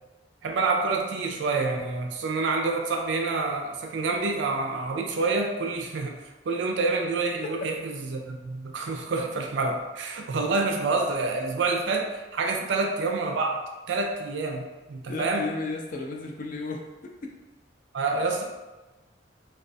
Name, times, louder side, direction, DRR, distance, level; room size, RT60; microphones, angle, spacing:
voice 1, 0.4-6.2 6.4-15.4 17.9-18.4, right 3 dB, 75° right, 2 dB, 0.4 m, -27 dB
voice 2, 15.1-17.3, left 3 dB, 45° left, 1 dB, 0.3 m, -34 dB
2.3 x 2.3 x 2.5 m, 1.2 s
head